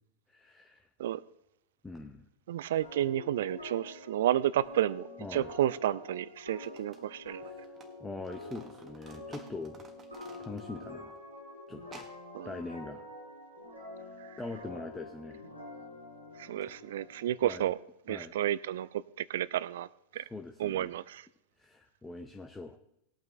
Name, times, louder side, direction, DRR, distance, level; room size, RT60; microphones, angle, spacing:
voice 1, 0.3-0.9 1.8-2.3 5.2-5.5 7.4-7.6 8.0-9.9 10.4-11.2 11.7-12.1 12.4-13.1 14.4-15.4 17.4-17.7 18.1-18.3 20.2-20.9 21.6-22.8, left 3 dB, 10° left, 4 dB, 0.8 m, -43 dB
voice 2, 2.5-7.4 12.3-12.5 16.4-17.8 18.1-19.9 20.1-20.2 20.6-21.2, right 12 dB, 60° right, 20 dB, 0.5 m, -31 dB
sound 1, 2.8-17.4, left 2 dB, 90° left, 4.8 m, -47 dB
sound 2, 5.8-5.9 6.5-10.9 11.2-11.3 11.8-12.2, right 4 dB, 20° right, 1.6 m, -54 dB
19.5 x 8.8 x 3.3 m, 0.78 s
figure-of-eight pair, 90°, 0 cm